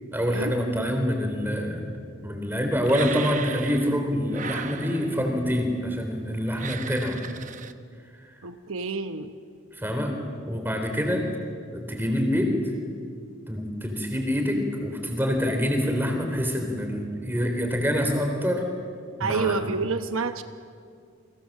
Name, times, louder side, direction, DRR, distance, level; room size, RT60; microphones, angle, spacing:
voice 1, 0.1-1.9 2.2-7.2 9.8-10.2 10.5-11.3 11.7-12.6 13.5-18.7 19.2-19.6, equal, 10° right, 4 dB, 3.7 m, -26 dB
sound 1, 2.9-4.0 4.3-5.4 6.5-7.7, right 7 dB, 35° right, 0.9 m, -37 dB
voice 2, 8.4-9.3 19.2-20.4, right 4 dB, 75° right, 9 dB, 1.0 m, -28 dB
29.5 x 24.0 x 7.5 m, 2.2 s
head